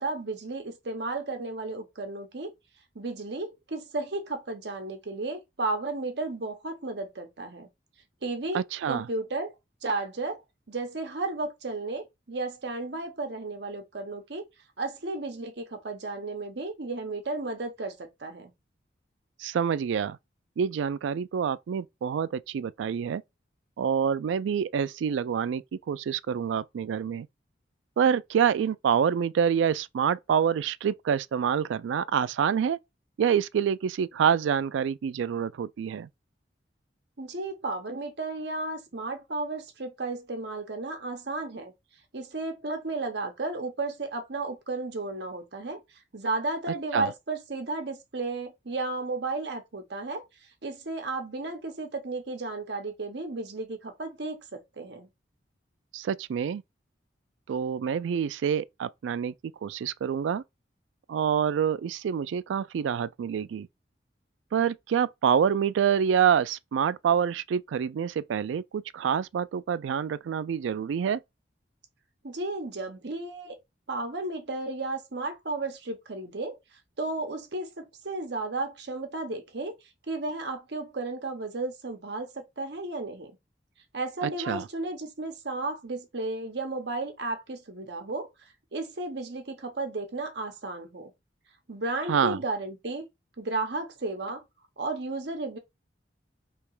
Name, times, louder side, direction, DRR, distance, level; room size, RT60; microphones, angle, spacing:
voice 1, 0.0-2.5 2.9-7.7 8.2-8.6 8.9-9.5 9.8-10.4 10.7-14.4 14.8-18.5 37.2-41.7 42.1-45.8 46.1-50.2 50.6-55.1 72.2-73.5 73.9-76.6 77.0-79.8 80.1-83.3 83.9-88.3 88.7-91.1 91.7-93.1 93.4-94.4 94.8-95.6, right 2 dB, 65° right, 0.9 m, -33 dB
voice 2, 8.5-9.1 19.4-20.2 20.6-23.2 23.8-27.3 28.0-32.8 33.2-36.1 46.9-47.1 55.9-56.6 57.5-59.3 59.6-60.4 61.1-63.7 64.5-71.2 84.2-84.7 92.1-92.4, right 7 dB, 80° right, 0.3 m, -27 dB
3.3 x 2.9 x 4.7 m
head